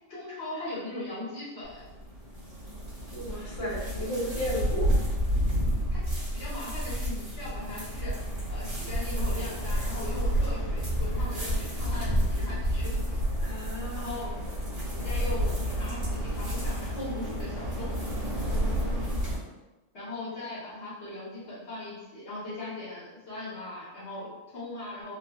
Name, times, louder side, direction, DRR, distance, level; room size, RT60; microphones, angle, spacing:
voice 1, 0.1-1.8 5.9-6.0 6.3-8.2 8.5-13.2 13.9-14.3 14.9-18.0 19.9-25.2, left 2 dB, 60° left, -8 dB, 1.2 m, -39 dB
sound 1, 1.6-19.4, equal, 55° right, 1.8 m, -30 dB
voice 2, 3.1-4.9 13.4-14.1 18.5-19.2, equal, 30° left, -7 dB, 0.7 m, -34 dB
3.9 x 2.3 x 2.2 m, 1.1 s
omnidirectional pair, 1.4 m